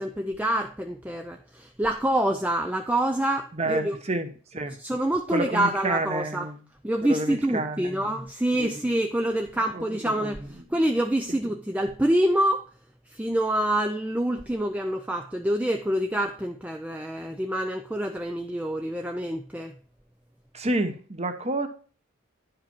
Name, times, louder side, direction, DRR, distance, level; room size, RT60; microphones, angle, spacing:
voice 1, 0.0-4.0 4.8-6.5 6.8-12.6 13.1-19.7, right 1 dB, 5° right, 0.4 m, -26 dB
voice 2, 3.5-4.8 5.3-6.6 7.0-8.0 8.6-8.7 9.5-10.3 11.3-11.4 20.5-21.7, right 2 dB, 30° right, 0.9 m, -29 dB
10.5 x 4.9 x 4.4 m
head